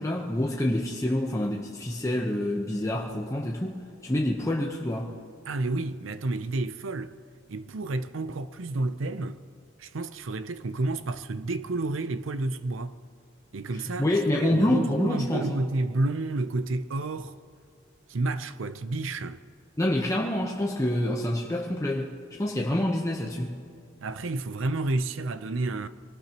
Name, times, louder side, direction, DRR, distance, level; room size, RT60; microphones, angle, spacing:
voice 1, 0.0-5.1 13.7-15.6 19.8-23.6, left 1 dB, 15° left, 0.9 m, -27 dB
voice 2, 5.5-7.1 7.5-9.4 9.8-12.9 13.5-14.1 14.3-17.4 18.1-19.4 24.0-25.9, right 2 dB, 75° right, 0.6 m, -30 dB
24.5 x 18.5 x 3.0 m
head